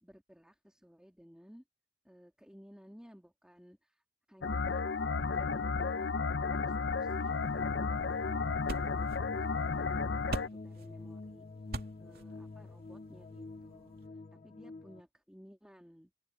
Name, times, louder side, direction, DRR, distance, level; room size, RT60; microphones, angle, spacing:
voice 1, 0.0-1.6 2.0-4.0 4.3-5.0 5.3-7.4 7.8-11.4 12.0-14.0 14.3-16.1, equal, 5° right, 2.6 m, -57 dB
sound 1, 4.4-10.5, left 4 dB, 70° left, 0.8 m, -33 dB
sound 2, 6.8-15.0, left 3 dB, 40° left, 0.5 m, -48 dB
sound 3, 7.0-14.1, right 1 dB, 55° right, 2.6 m, -46 dB
open air
head